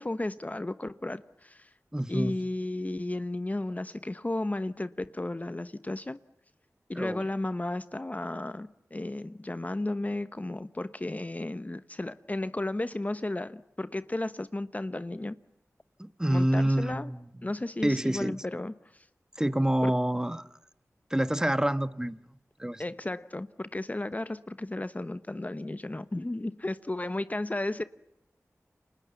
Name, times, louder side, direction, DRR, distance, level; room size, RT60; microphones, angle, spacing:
voice 1, 0.0-1.7 2.1-6.2 6.9-15.4 16.3-17.1 17.4-19.1 19.8-19.9 22.8-27.8, left 2 dB, 30° left, 1.0 m, -34 dB
voice 2, 1.9-2.3 6.9-7.3 16.0-17.2 17.8-18.4 19.4-20.4 21.1-22.2 22.6-22.8, right 1 dB, 10° right, 1.3 m, -27 dB
29.5 x 26.5 x 7.0 m
wide cardioid pair, 65°, 5 cm